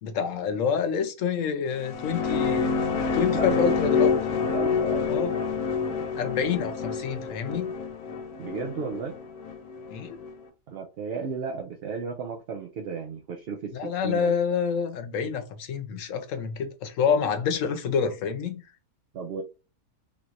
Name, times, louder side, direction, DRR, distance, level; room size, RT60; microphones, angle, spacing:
voice 1, 0.0-2.7 3.1-4.1 5.1-5.3 6.2-7.7 9.9-10.2 13.7-18.6, left 6 dB, 65° left, 1.0 m, -27 dB
sound 1, 1.7-10.3, left 5 dB, 85° left, 1.2 m, -27 dB
voice 2, 3.2-3.6 4.4-5.1 8.4-9.2 10.7-14.3 19.1-19.4, right 5 dB, 65° right, 0.6 m, -34 dB
3.4 x 3.0 x 2.5 m
omnidirectional pair, 1.6 m